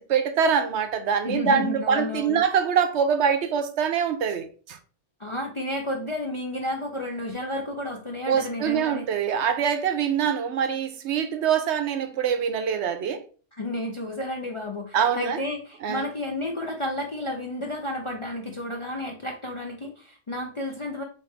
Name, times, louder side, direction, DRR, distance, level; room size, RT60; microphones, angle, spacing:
voice 1, 0.0-4.5 8.3-13.2 14.9-15.4 15.8-16.0, right 7 dB, 70° right, 0.9 m, -24 dB
voice 2, 1.2-2.4 5.2-9.1 13.5-21.0, left 1 dB, 40° left, 0.4 m, -31 dB
4.1 x 3.3 x 3.2 m
omnidirectional pair, 1.3 m